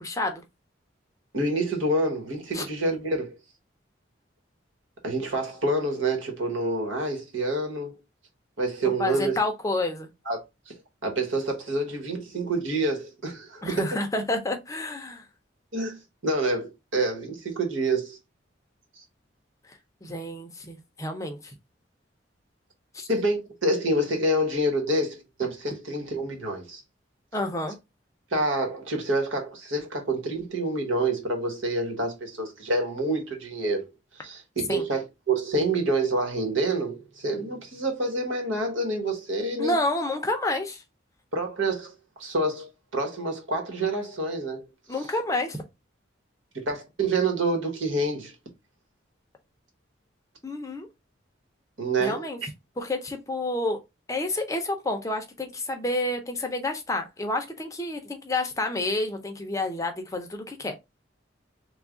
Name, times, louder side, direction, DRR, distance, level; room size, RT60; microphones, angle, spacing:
voice 1, 0.0-0.4 2.5-2.7 8.8-10.1 13.6-15.2 19.7-21.5 22.9-23.1 27.3-27.8 34.7-34.9 39.6-40.8 44.9-45.6 50.4-50.9 52.0-52.4 52.8-53.8 54.1-60.8, left 2 dB, 15° left, 0.5 m, -29 dB
voice 2, 1.3-3.3 5.0-8.0 8.6-9.4 10.2-10.4 10.7-14.0 15.7-18.2 18.9-19.0 23.1-26.8 28.3-39.8 41.3-44.7 46.5-48.3 51.8-52.3, right 2 dB, 85° right, 1.2 m, -27 dB
3.2 x 2.3 x 3.6 m
head